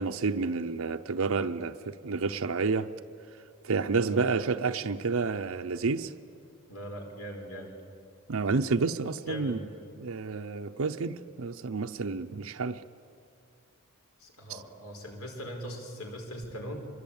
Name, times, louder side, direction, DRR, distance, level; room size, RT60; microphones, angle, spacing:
voice 1, 0.0-2.9 3.6-6.1 8.3-9.7 10.0-12.8 14.5-14.6, right 4 dB, 70° right, 0.6 m, -30 dB
voice 2, 6.7-7.7 9.3-9.6 14.2-16.9, equal, 75° left, 4.8 m, -40 dB
25.0 x 22.5 x 8.7 m
head